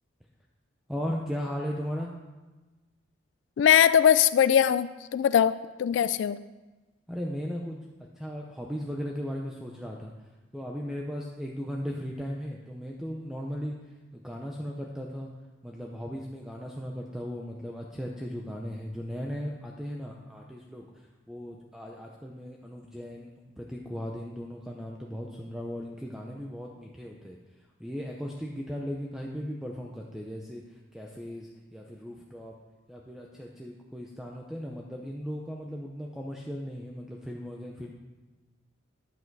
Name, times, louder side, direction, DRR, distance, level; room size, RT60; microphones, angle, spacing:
voice 1, 0.9-2.1 7.1-10.1 10.5-13.7 14.1-15.3 15.6-27.4 27.8-32.6 32.9-37.9, equal, 5° right, -1 dB, 0.7 m, -37 dB
voice 2, 3.6-6.4, left 9 dB, 70° left, 14 dB, 0.3 m, -21 dB
10.5 x 8.3 x 4.7 m, 1.2 s
head